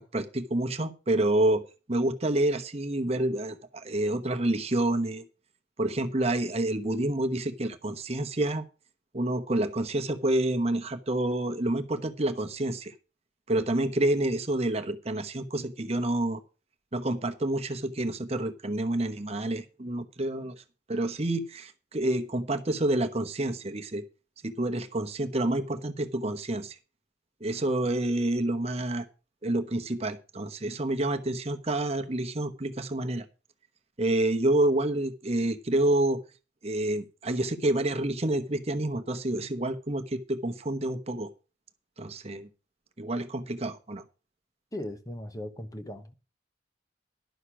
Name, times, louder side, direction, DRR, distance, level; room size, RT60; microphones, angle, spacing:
voice 1, 0.0-1.6 1.9-5.2 5.8-8.6 9.1-12.9 13.5-16.4 16.9-20.5 20.9-24.0 24.4-26.8 27.4-29.1 29.4-33.3 34.0-36.2 36.6-41.3 42.0-42.5 43.0-44.0, right 1 dB, 35° right, 1.0 m, -28 dB
voice 2, 44.7-46.1, left 1 dB, 20° left, 1.0 m, -38 dB
11.5 x 6.6 x 6.2 m
head